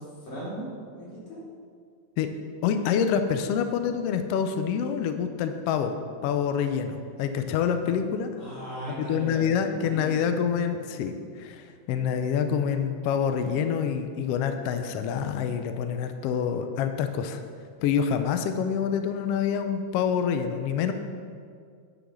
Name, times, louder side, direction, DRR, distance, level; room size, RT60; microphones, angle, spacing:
voice 1, 0.0-1.4 8.4-10.3, right 1 dB, 55° left, -8 dB, 4.3 m, -38 dB
voice 2, 2.6-6.0 6.2-8.3 9.0-17.4 17.8-20.9, left 7 dB, 85° left, 7 dB, 1.4 m, -27 dB
9.9 x 6.3 x 6.2 m, 2.1 s
omnidirectional pair, 3.4 m